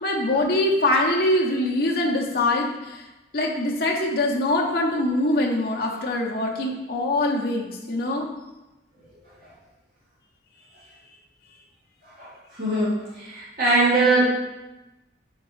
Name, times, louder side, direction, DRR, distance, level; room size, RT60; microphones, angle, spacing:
voice 1, 0.0-3.1 3.3-8.3, left 1 dB, 50° left, -1 dB, 0.6 m, -23 dB
voice 2, 12.6-12.9 13.2-14.2, right 2 dB, 45° right, -9 dB, 1.4 m, -20 dB
4.3 x 3.9 x 3.1 m, 1.0 s
head